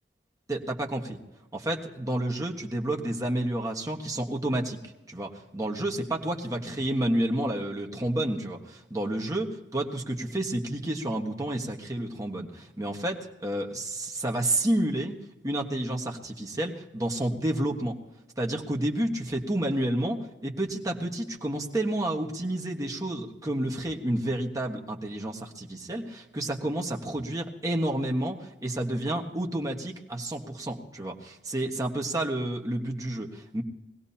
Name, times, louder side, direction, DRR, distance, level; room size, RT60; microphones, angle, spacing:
voice 1, 0.5-1.2 1.5-4.8 5.1-15.2 15.4-18.0 18.4-33.6, right 1 dB, 20° right, 1 dB, 1.5 m, -30 dB
22.5 x 17.0 x 2.9 m, 1.0 s
head